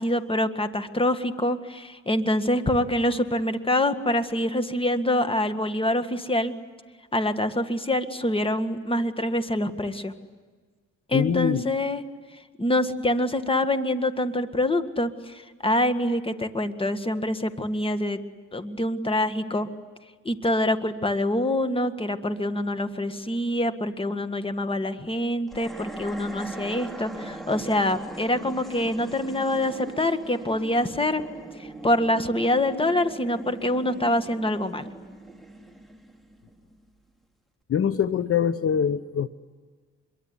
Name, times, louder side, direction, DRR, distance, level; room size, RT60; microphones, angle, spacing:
voice 1, 0.0-6.5 7.1-10.1 11.1-12.0 12.6-18.2 18.5-19.7 20.3-31.2 31.8-34.9, left 1 dB, 20° left, 10 dB, 1.9 m, -25 dB
voice 2, 11.1-11.7 37.7-39.3, left 8 dB, 50° left, 13 dB, 1.0 m, -23 dB
sound 1, 25.5-36.8, right 2 dB, ahead, 2.6 m, -40 dB
26.0 x 23.0 x 9.8 m, 1.5 s
cardioid pair, 90°, 30 cm